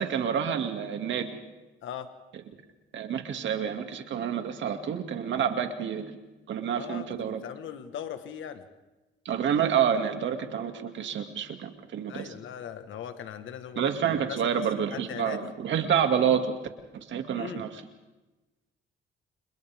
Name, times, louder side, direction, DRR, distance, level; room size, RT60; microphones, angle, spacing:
voice 1, 0.0-1.4 2.9-6.1 6.5-7.4 9.3-12.3 13.8-16.5 16.9-17.7, right 8 dB, 70° right, 5 dB, 2.4 m, -28 dB
voice 2, 6.7-8.6 12.1-14.7 14.9-15.5 17.3-17.6, left 9 dB, 75° left, 8 dB, 1.5 m, -39 dB
30.0 x 27.0 x 3.6 m, 1.1 s
cardioid pair, 90°, 20 cm